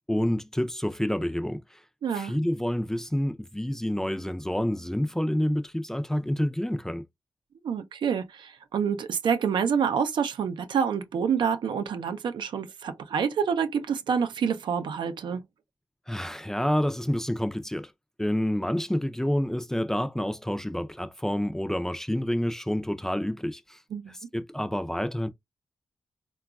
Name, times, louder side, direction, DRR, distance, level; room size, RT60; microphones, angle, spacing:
voice 1, 0.1-1.8 2.1-7.0 16.1-17.9 18.2-23.8 24.1-25.3, equal, 5° left, 0.4 m, -28 dB
voice 2, 2.0-2.3 7.6-15.4 23.9-24.1, right 7 dB, 90° right, 0.5 m, -27 dB
3.8 x 2.3 x 2.3 m
wide cardioid pair, 90°, 8 cm